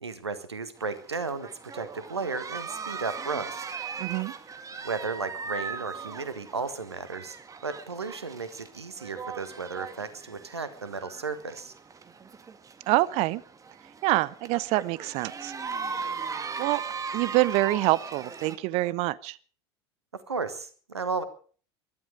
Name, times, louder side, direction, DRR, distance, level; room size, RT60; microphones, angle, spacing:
voice 1, 0.0-3.6 4.8-7.4 7.6-11.7 20.1-21.2, right 4 dB, 85° right, 13 dB, 1.5 m, -34 dB
sound 1, 0.8-18.6, right 5 dB, 25° right, 1.6 m, -39 dB
voice 2, 4.0-4.3 12.9-13.4 14.0-15.5 16.6-16.8 17.1-19.4, right 19 dB, 50° right, 22 dB, 0.8 m, -26 dB
19.5 x 12.5 x 5.0 m, 0.42 s
figure-of-eight pair, 70°, 14 cm